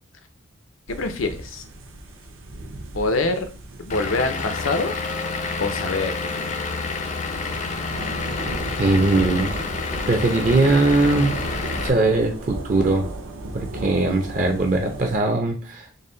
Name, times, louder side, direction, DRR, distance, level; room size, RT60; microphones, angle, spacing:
voice 1, 0.9-1.6 2.9-3.5 3.8-4.9 5.6-6.5, left 3 dB, 85° left, 8 dB, 0.6 m, -25 dB
sound 1, 0.9-15.2, right 2 dB, 85° right, 0.7 m, -35 dB
Vehicle / Engine, 3.9-11.9, left 4 dB, 35° left, 0.4 m, -29 dB
voice 2, 8.8-9.5 10.1-11.3 11.8-13.1 13.5-15.9, right 2 dB, 40° right, 3 dB, 0.5 m, -20 dB
4.0 x 2.1 x 3.8 m, 0.35 s
head